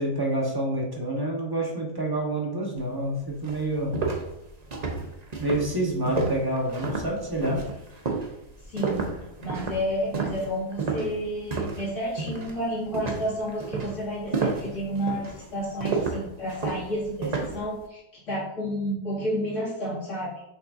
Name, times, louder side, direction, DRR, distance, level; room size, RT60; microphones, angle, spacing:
voice 1, 0.0-3.9 5.4-7.6, right 1 dB, 15° right, -2 dB, 1.1 m, -28 dB
sound 1, 2.9-3.0 3.4-11.9 12.2-12.6 12.9-17.6, right 4 dB, 35° right, 0.8 m, -31 dB
voice 2, 8.7-9.1 9.4-20.4, equal, 55° left, -7 dB, 2.6 m, -31 dB
6.4 x 5.7 x 2.6 m, 0.84 s
omnidirectional pair, 1.6 m